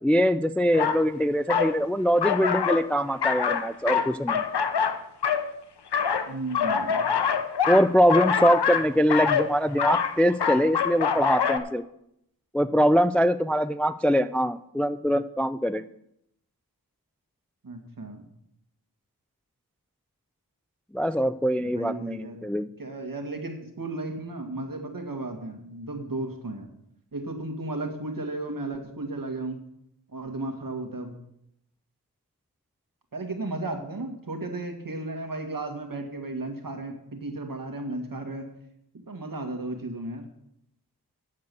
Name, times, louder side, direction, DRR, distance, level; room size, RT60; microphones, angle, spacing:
voice 1, 0.0-4.4 7.6-11.8 12.5-15.8 20.9-22.7, equal, 5° left, 13 dB, 0.3 m, -23 dB
sound 1, 0.7-1.0 1.5-1.8 2.2-2.9 3.2-5.5 5.9-11.6, left 7 dB, 85° left, 0.9 m, -25 dB
voice 2, 6.3-7.0 17.6-18.3 21.6-22.5 22.8-26.7 27.1-29.6 30.1-31.2 33.1-38.5 39.1-40.3, right 2 dB, 55° right, 5 dB, 2.0 m, -34 dB
9.6 x 7.9 x 6.9 m, 0.77 s
wide cardioid pair, 70°, 39 cm